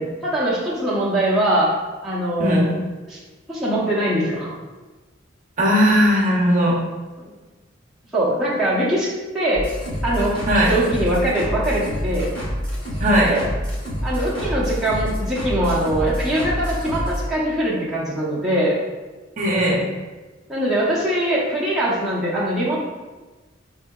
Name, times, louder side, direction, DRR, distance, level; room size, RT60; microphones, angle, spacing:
voice 1, 0.0-1.7 2.0-2.7 3.1-3.2 3.5-4.5 8.1-9.7 10.0-10.4 10.7-12.3 13.2-13.5 14.0-18.8 20.5-22.8, right 1 dB, ahead, -9 dB, 0.7 m, -22 dB
voice 2, 5.6-6.7 10.5-10.7 13.0-13.3 19.4-19.8, equal, 40° right, -4 dB, 0.7 m, -17 dB
sound 1, 9.6-17.2, equal, 20° left, 1.0 m, -27 dB
4.7 x 2.7 x 2.3 m, 1.2 s
head